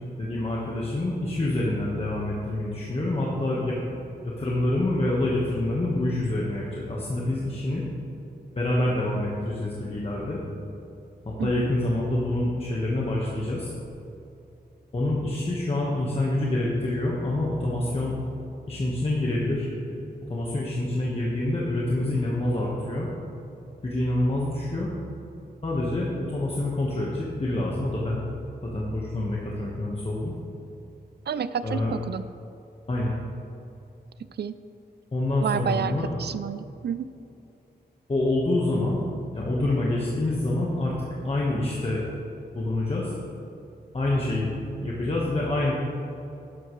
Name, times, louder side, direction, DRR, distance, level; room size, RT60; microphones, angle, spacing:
voice 1, 0.2-3.8 4.2-7.8 8.6-10.4 11.2-13.7 14.9-18.2 18.7-20.0 20.3-23.1 23.8-24.9 25.6-28.2 28.6-30.4 31.6-31.9 32.9-33.2 35.1-36.1 38.1-39.0 39.3-42.0 42.5-43.1 43.9-44.5 44.8-45.7, left 1 dB, 35° left, -4 dB, 1.4 m, -26 dB
voice 2, 11.4-11.7 31.3-32.2 34.4-34.5 35.4-35.9 36.2-37.1, right 8 dB, 75° right, 13 dB, 0.4 m, -29 dB
12.5 x 11.0 x 3.2 m, 2.8 s
wide cardioid pair, 135°, 17 cm